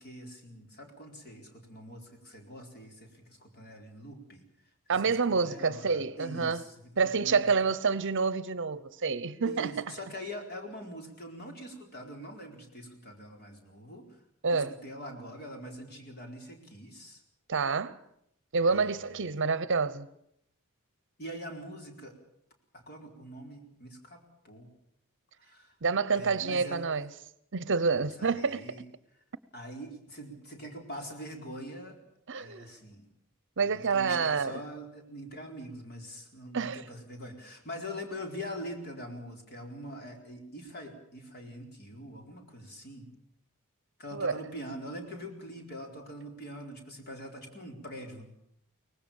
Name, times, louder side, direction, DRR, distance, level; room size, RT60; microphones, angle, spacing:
voice 1, 0.0-4.4 5.0-7.5 9.4-14.1 14.5-17.2 18.7-19.4 21.2-22.1 22.7-24.7 25.4-25.7 26.1-26.9 28.0-28.8 29.5-32.0 32.3-33.1 33.6-43.1 44.0-48.3, equal, 45° left, 4.3 m, -43 dB
voice 2, 4.9-6.6 7.0-9.7 14.4-14.8 17.5-18.0 18.5-20.1 25.8-27.1 27.5-28.7 32.3-32.7 33.6-34.6 36.5-36.8 44.1-44.4, right 5 dB, 60° right, 0.8 m, -28 dB
23.5 x 19.0 x 7.1 m
head